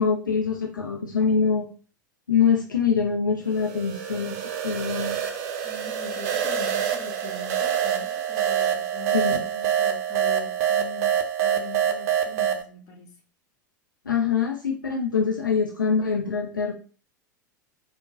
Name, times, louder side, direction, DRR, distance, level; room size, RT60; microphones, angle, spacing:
voice 1, 0.0-1.7 2.3-5.2 9.1-9.4 14.1-16.7, left 6 dB, 80° left, 1 dB, 0.4 m, -24 dB
sound 1, 3.5-12.6, right 9 dB, 50° right, 0.5 m, -26 dB
voice 2, 5.6-11.1 11.4-13.1, left 4 dB, 35° left, -1 dB, 1.0 m, -42 dB
3.5 x 2.0 x 2.4 m, 0.40 s
figure-of-eight pair, 85°, 10 cm